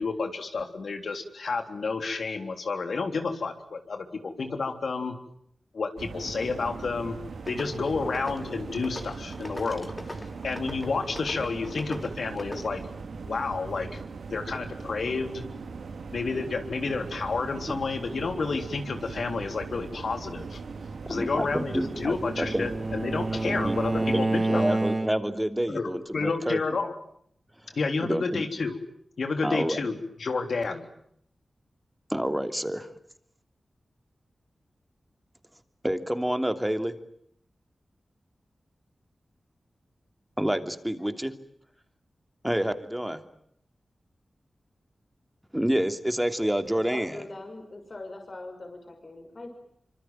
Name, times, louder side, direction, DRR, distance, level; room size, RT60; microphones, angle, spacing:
voice 1, 0.0-5.1 5.7-7.2 7.5-9.9 10.4-12.8 13.2-14.0 14.3-15.4 16.1-20.6 21.1-24.6 25.7-26.9 27.7-28.8 29.2-30.9, left 4 dB, 75° left, 7 dB, 3.6 m, -30 dB
sound 1, 6.0-24.2, right 4 dB, 85° right, 2.7 m, -40 dB
sound 2, 7.4-12.7, left 1 dB, 20° left, 3.5 m, -43 dB
voice 2, 21.1-22.7 23.4-26.6 28.0-28.4 29.4-29.8 32.1-32.9 35.8-36.9 40.4-41.3 42.4-43.2 45.5-47.2, equal, 10° right, 9 dB, 3.0 m, -28 dB
Bowed string instrument, 21.5-25.5, right 2 dB, 45° right, 1.8 m, -29 dB
voice 3, 46.9-49.5, left 2 dB, 50° left, 3 dB, 6.1 m, -41 dB
25.5 x 25.0 x 9.2 m, 0.70 s
cardioid pair, 45°, 0 cm